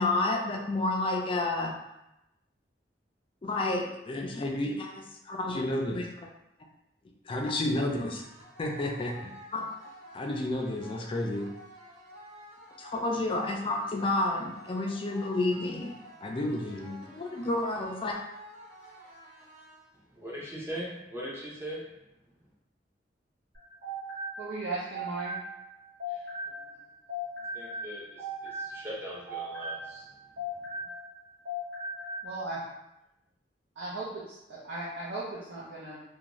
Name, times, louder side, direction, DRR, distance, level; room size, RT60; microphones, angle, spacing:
voice 1, 0.0-1.7 3.4-6.3 7.2-8.3 8.6-9.7 10.1-11.5 12.8-15.9 16.2-18.2, left 2 dB, 30° left, 1 dB, 0.3 m, -30 dB
sound 1, 8.1-20.1, equal, 40° right, 1.0 m, -51 dB
voice 2, 20.1-21.8 27.5-30.0, equal, 15° right, -6 dB, 0.7 m, -40 dB
sound 2, 23.5-26.8 27.1-31.2 31.4-32.3, equal, 60° right, 1.2 m, -38 dB
voice 3, 24.4-25.4 26.1-26.3 26.6-26.7 32.2-32.7 33.8-36.0, right 2 dB, 80° right, -8 dB, 0.5 m, -37 dB
2.5 x 2.2 x 2.9 m, 0.89 s
head